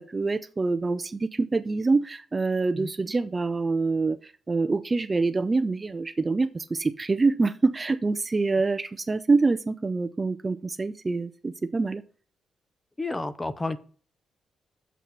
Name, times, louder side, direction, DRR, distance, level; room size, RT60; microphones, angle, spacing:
voice 1, 0.0-12.0, right 3 dB, 25° right, 0.5 m, -26 dB
voice 2, 13.0-13.8, left 2 dB, 15° left, 0.7 m, -30 dB
7.4 x 5.9 x 5.3 m
cardioid pair, 125°, 0 cm